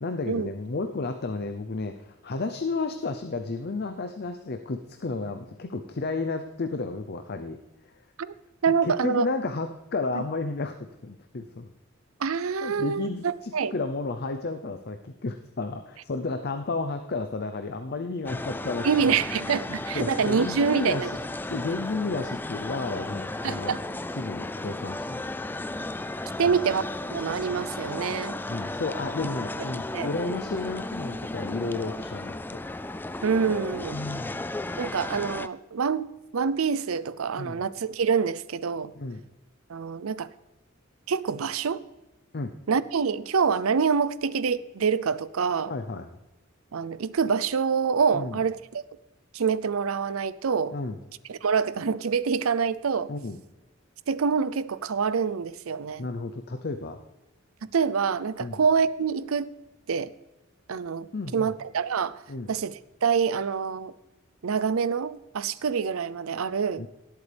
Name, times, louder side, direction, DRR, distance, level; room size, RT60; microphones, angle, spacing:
voice 1, 0.0-7.6 8.8-11.7 12.6-19.2 19.9-21.1 21.5-23.7 24.2-25.2 26.5-26.6 28.5-32.6 33.9-34.4 37.4-37.6 39.0-39.2 42.3-42.5 45.7-46.1 48.1-48.4 50.7-51.0 53.1-53.4 56.0-57.0 58.4-58.6 61.1-61.5 62.3-62.5 66.8-66.9, left 3 dB, 50° left, 7 dB, 0.7 m, -32 dB
voice 2, 8.6-9.3 10.1-10.2 12.2-13.7 18.8-21.1 23.4-23.8 26.4-28.4 29.9-30.1 33.2-34.0 34.8-38.9 39.7-40.3 41.1-41.8 42.7-45.7 46.7-48.8 49.3-50.7 51.3-53.1 54.1-56.1 57.7-59.5 59.9-60.1 60.7-62.2 62.5-63.9 64.4-66.8, right 6 dB, 85° right, 17 dB, 0.6 m, -26 dB
sound 1, 18.3-35.5, left 2 dB, 10° left, 0.3 m, -34 dB
18.5 x 8.2 x 3.4 m, 1.0 s
head